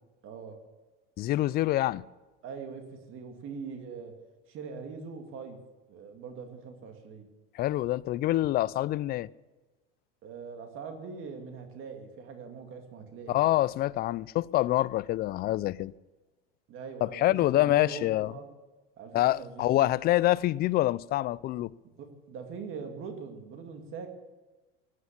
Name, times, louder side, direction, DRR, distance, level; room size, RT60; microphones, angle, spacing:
voice 1, 0.2-0.6 2.4-4.1 4.5-5.6 5.9-7.3 10.2-13.5 16.7-18.4 19.0-19.9 22.0-24.1, right 5 dB, 45° right, 2.3 m, -42 dB
voice 2, 1.2-2.0 7.5-9.3 13.3-15.9 17.0-18.3 19.1-21.7, left 15 dB, 35° left, 0.4 m, -26 dB
17.0 x 9.4 x 7.2 m
supercardioid pair, 120°, 29 cm